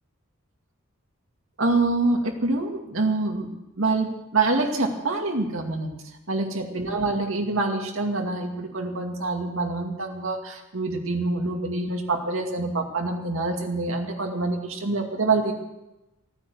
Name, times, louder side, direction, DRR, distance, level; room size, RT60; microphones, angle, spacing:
voice 1, 1.6-3.5 3.8-5.9 6.3-15.5, right 3 dB, 65° right, 3 dB, 2.2 m, -26 dB
15.5 x 9.7 x 7.9 m, 0.96 s
head